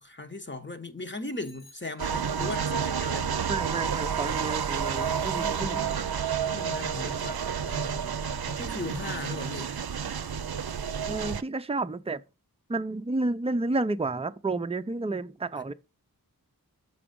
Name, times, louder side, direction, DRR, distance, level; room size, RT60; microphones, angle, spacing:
voice 1, 0.0-3.6 5.3-9.7, left 3 dB, 30° left, 1.1 m, -39 dB
Bicycle bell, 1.4-2.7, left 2 dB, 70° left, 4.3 m, -59 dB
sound 1, 2.0-11.4, right 7 dB, 70° right, 0.6 m, -30 dB
voice 2, 3.5-5.8 11.1-12.2 12.7-15.7, right 2 dB, 15° right, 0.5 m, -31 dB
7.0 x 4.9 x 5.2 m
wide cardioid pair, 45°, 38 cm